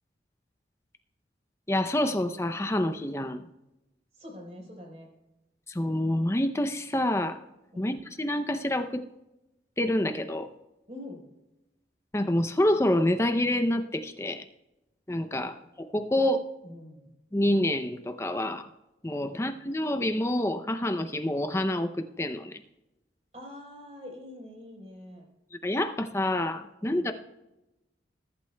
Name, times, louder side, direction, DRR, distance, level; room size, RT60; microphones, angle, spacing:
voice 1, 1.7-3.4 5.7-7.4 7.8-9.0 9.8-10.5 12.1-14.4 15.1-15.5 15.9-16.5 17.3-18.7 19.0-22.6 25.6-27.1, left 1 dB, 15° left, 8 dB, 0.5 m, -27 dB
voice 2, 4.1-5.1 7.7-8.0 10.9-11.3 15.4-15.5 16.1-16.2 16.6-17.2 19.3-19.5 23.3-25.2 26.9-27.1, left 1 dB, 35° right, 0 dB, 4.1 m, -45 dB
21.0 x 11.5 x 2.2 m, 0.96 s
head